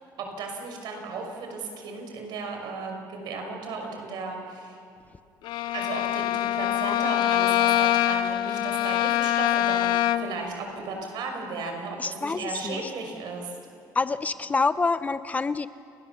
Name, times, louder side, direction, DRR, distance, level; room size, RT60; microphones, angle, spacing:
voice 1, 0.2-4.8 5.7-13.6, right 4 dB, 65° right, 3 dB, 5.7 m, -35 dB
Bowed string instrument, 5.4-10.4, left 12 dB, 70° left, 0.8 m, -24 dB
voice 2, 12.0-12.8 13.9-15.7, left 4 dB, 20° left, 13 dB, 0.5 m, -27 dB
30.0 x 20.0 x 7.1 m, 2.6 s
cardioid pair, 155°, 8 cm